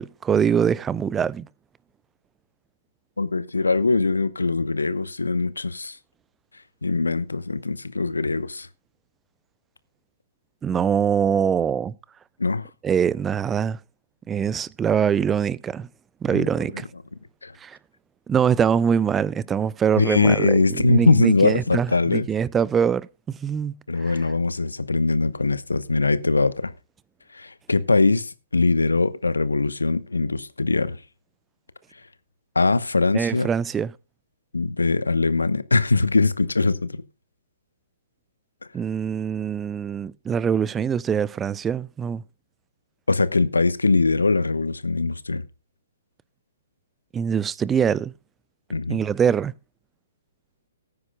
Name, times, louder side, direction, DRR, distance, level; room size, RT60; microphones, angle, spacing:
voice 1, 0.0-1.5 10.6-11.9 12.8-13.8 14.3-15.9 16.2-16.9 17.6-17.8 18.3-23.7 24.0-24.1 33.1-33.9 38.7-42.2 47.1-48.1 48.9-49.5, right 7 dB, 15° right, 0.5 m, -23 dB
voice 2, 3.2-6.0 6.8-8.7 12.4-12.7 16.3-16.5 17.4-17.5 20.0-22.3 23.9-26.7 27.3-31.0 32.5-33.5 34.5-37.0 43.1-45.4 48.7-49.0, left 3 dB, 85° left, 1.0 m, -22 dB
18.5 x 9.7 x 2.3 m
figure-of-eight pair, 125°, 0 cm